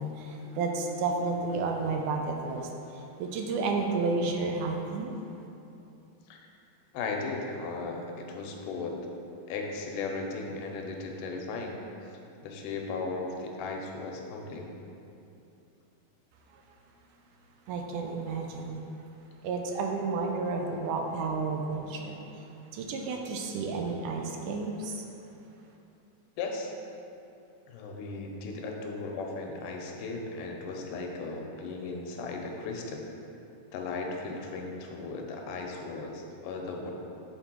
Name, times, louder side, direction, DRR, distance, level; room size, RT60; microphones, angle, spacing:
voice 1, 0.0-5.2 16.5-16.6 17.7-18.8 19.4-22.2 22.7-25.0, right 3 dB, 80° right, 2 dB, 1.9 m, -31 dB
voice 2, 6.9-9.0 9.5-11.8 12.4-14.7 26.4-26.7 27.7-33.1 33.7-36.9, left 3 dB, 85° left, 1 dB, 2.2 m, -36 dB
6.6 x 4.5 x 4.4 m, 2.8 s
omnidirectional pair, 3.7 m